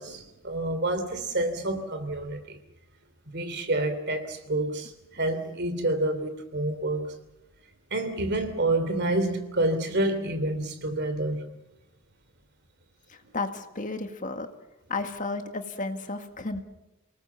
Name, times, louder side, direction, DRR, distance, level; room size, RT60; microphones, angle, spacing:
voice 1, 0.0-2.6 3.3-7.1 7.9-11.4, right 2 dB, 50° right, 3.1 m, -28 dB
voice 2, 13.1-14.5 14.9-16.6, left 3 dB, 35° left, 1.8 m, -33 dB
28.5 x 19.5 x 7.2 m
head